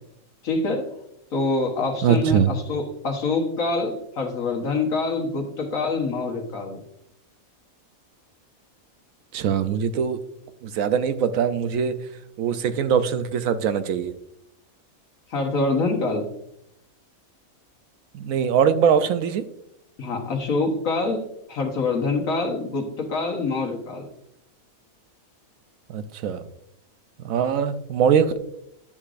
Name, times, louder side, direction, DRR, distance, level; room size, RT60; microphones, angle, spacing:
voice 1, 0.4-0.8 1.3-6.8 15.3-16.3 20.0-21.2 21.5-24.0, left 3 dB, 70° left, 2 dB, 1.7 m, -25 dB
voice 2, 2.0-2.5 9.3-10.2 10.6-12.0 12.4-14.1 18.1-19.4 25.9-26.5 27.2-28.4, right 7 dB, 75° right, 11 dB, 1.0 m, -22 dB
10.5 x 6.5 x 2.5 m, 0.77 s
omnidirectional pair, 1.5 m